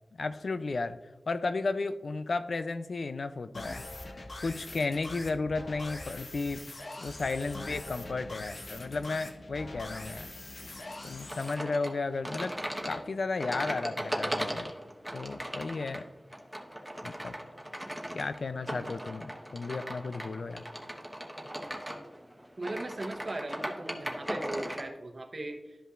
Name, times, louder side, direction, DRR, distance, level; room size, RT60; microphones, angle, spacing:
voice 1, 0.2-1.0 1.3-3.8 4.4-6.6 7.0-10.3 11.0-12.5 12.8-14.7 15.1-16.1 17.0-17.3 18.1-20.6, left 3 dB, 80° left, 11 dB, 0.4 m, -33 dB
sound 1, 3.5-11.5, left 2 dB, 60° left, 0.9 m, -43 dB
sound 2, 11.3-24.9, equal, 5° right, 1.0 m, -38 dB
voice 2, 22.6-25.8, right 2 dB, 55° right, 4 dB, 0.9 m, -38 dB
12.0 x 5.4 x 2.5 m, 1.1 s
wide cardioid pair, 70°, 0 cm